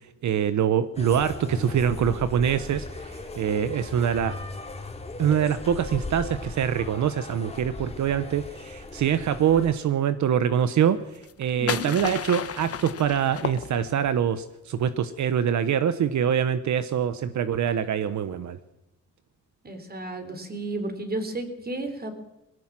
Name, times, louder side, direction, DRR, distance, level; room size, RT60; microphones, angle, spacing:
voice 1, 0.2-4.3 5.2-11.0 11.4-18.6, right 8 dB, 75° right, 12 dB, 1.0 m, -24 dB
sound 1, 0.9-9.7, left 2 dB, 20° left, 2.7 m, -37 dB
sound 2, 11.1-14.2, left 8 dB, 50° left, 1.2 m, -33 dB
voice 2, 11.6-11.9 19.6-22.1, right 2 dB, 30° right, 7 dB, 4.1 m, -32 dB
20.5 x 17.0 x 7.5 m, 0.91 s
cardioid pair, 100°, 29 cm